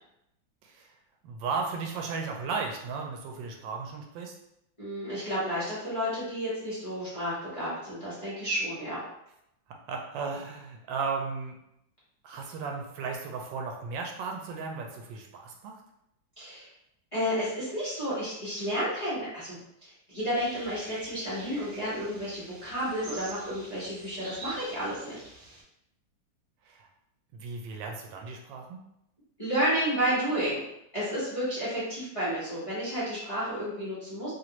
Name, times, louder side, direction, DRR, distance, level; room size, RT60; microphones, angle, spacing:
voice 1, 1.2-4.3 9.7-11.6 12.2-15.8 26.7-26.9 27.3-28.8, right 4 dB, 80° right, 2 dB, 1.2 m, -35 dB
voice 2, 4.8-9.0 16.4-16.7 17.1-25.2 29.4-30.6 30.9-34.3, equal, 25° left, -11 dB, 0.9 m, -31 dB
sound 1, 20.3-25.6, right 2 dB, 50° right, 1.0 m, -46 dB
3.1 x 2.5 x 2.9 m, 0.81 s
omnidirectional pair, 2.0 m